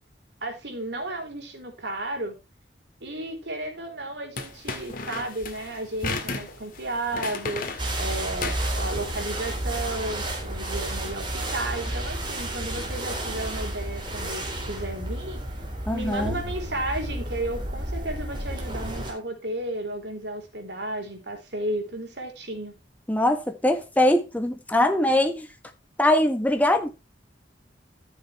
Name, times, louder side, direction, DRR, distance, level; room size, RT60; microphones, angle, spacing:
voice 1, 0.4-2.3 3.0-7.7 8.0-15.4 15.9-22.8, right 1 dB, 70° right, 3.8 m, -33 dB
sound 1, 4.4-9.4, left 3 dB, 55° left, 2.0 m, -34 dB
sound 2, 7.8-19.1, right 1 dB, 25° right, 3.8 m, -31 dB
voice 2, 15.9-16.3 23.1-25.5 26.0-26.9, left 1 dB, 10° left, 1.5 m, -22 dB
14.0 x 7.2 x 3.3 m
head